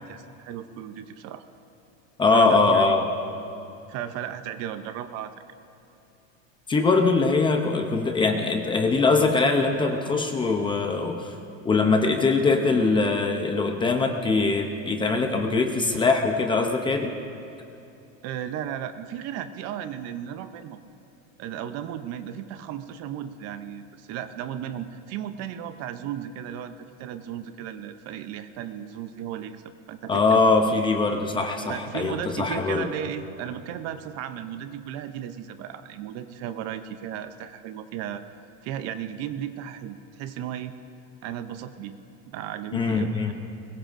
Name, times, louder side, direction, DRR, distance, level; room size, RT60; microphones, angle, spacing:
voice 1, 0.0-1.4 2.3-2.8 3.9-5.3 18.2-20.8 21.4-26.7 27.0-29.6 29.9-30.5 31.7-38.2 38.6-40.7 41.2-42.0 42.3-43.3, right 10 dB, 40° right, 10 dB, 0.6 m, -35 dB
voice 2, 2.2-3.1 6.7-11.4 11.6-17.1 30.1-32.9 42.7-43.3, left 3 dB, 15° left, 4 dB, 0.6 m, -22 dB
22.0 x 21.0 x 2.5 m, 2.8 s
cardioid pair, 165°, 38 cm